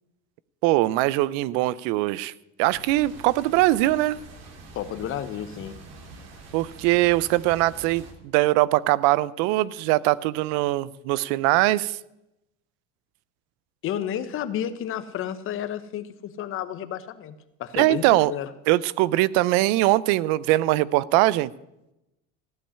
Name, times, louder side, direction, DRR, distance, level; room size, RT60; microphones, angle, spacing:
voice 1, 0.6-2.3 2.6-4.2 6.5-8.0 8.3-12.0 17.7-18.3 18.7-21.5, right 17 dB, 75° right, 21 dB, 0.6 m, -21 dB
sound 1, 2.7-8.1, right 3 dB, 60° right, 2.9 m, -45 dB
voice 2, 4.7-5.8 13.8-18.5, left 10 dB, 45° left, 12 dB, 1.0 m, -31 dB
15.0 x 5.5 x 10.0 m, 0.90 s
cardioid pair, 135°, 29 cm